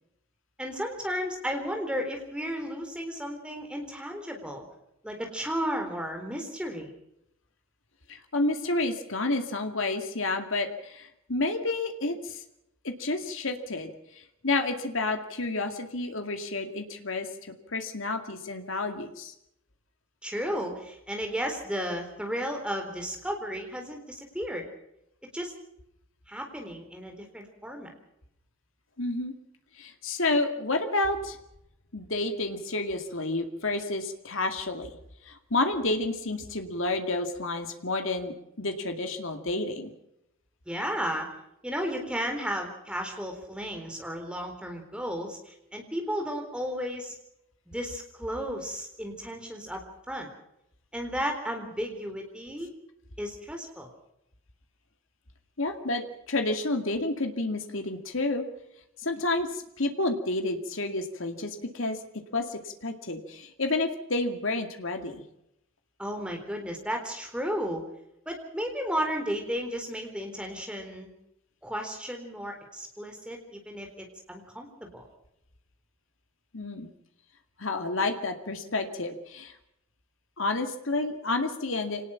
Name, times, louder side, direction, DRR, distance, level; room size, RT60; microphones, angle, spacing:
voice 1, 0.6-4.6 5.0-6.9 20.2-24.7 25.3-25.5 26.3-27.9 40.7-41.3 41.6-47.2 47.7-49.8 50.1-50.3 50.9-52.7 53.2-53.9 66.0-67.8 68.3-71.1 71.6-75.1, equal, 5° right, 3 dB, 4.0 m, -34 dB
voice 2, 8.1-12.4 12.8-13.9 14.2-19.3 29.0-29.3 29.8-31.4 31.9-34.9 35.2-39.9 55.6-58.5 59.0-62.0 62.3-65.2 76.5-76.9 77.6-79.5 80.4-82.1, left 2 dB, 70° left, 6 dB, 2.2 m, -30 dB
25.5 x 19.0 x 5.9 m, 0.80 s
head